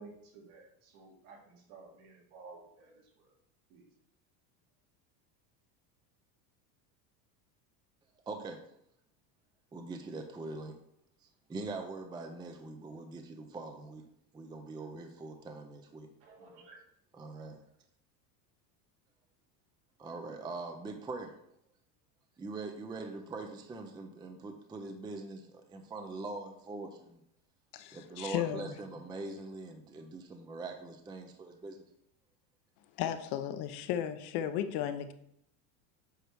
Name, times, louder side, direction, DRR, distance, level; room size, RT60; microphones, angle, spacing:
voice 1, 0.0-2.9 3.7-3.8 16.2-16.8, right 3 dB, 70° right, 0 dB, 2.1 m, -53 dB
voice 2, 8.3-8.6 9.7-10.8 11.5-14.1 14.3-16.1 17.1-17.6 20.0-21.3 22.4-27.2 27.9-31.8, right 3 dB, 10° right, 5 dB, 0.4 m, -42 dB
voice 3, 27.7-28.8 33.0-35.1, left 10 dB, 55° left, 9 dB, 0.8 m, -34 dB
8.0 x 3.2 x 4.6 m, 0.74 s
supercardioid pair, 115°, 47 cm